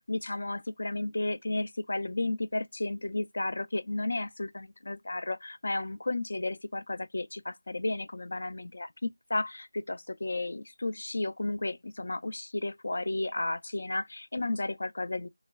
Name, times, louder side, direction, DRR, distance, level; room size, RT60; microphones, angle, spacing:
voice 1, 0.1-15.3, left 2 dB, 50° left, 0.4 m, -33 dB
3.0 x 2.3 x 2.2 m
figure-of-eight pair, 175°, 0 cm